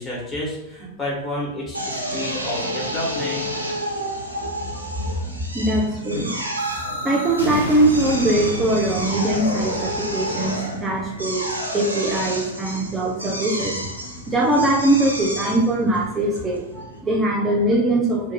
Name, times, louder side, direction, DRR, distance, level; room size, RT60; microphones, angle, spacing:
voice 1, 0.0-3.4, left 1 dB, 25° left, -5 dB, 1.1 m, -30 dB
Drill, 1.7-17.0, equal, 85° right, 0.4 m, -30 dB
voice 2, 5.5-6.3 7.0-13.8 14.3-18.3, right 1 dB, 15° right, -3 dB, 0.4 m, -21 dB
sound 1, 6.6-12.3, right 1 dB, 85° left, 0.5 m, -32 dB
2.4 x 2.2 x 2.8 m, 0.84 s
figure-of-eight pair, 90°, 0 cm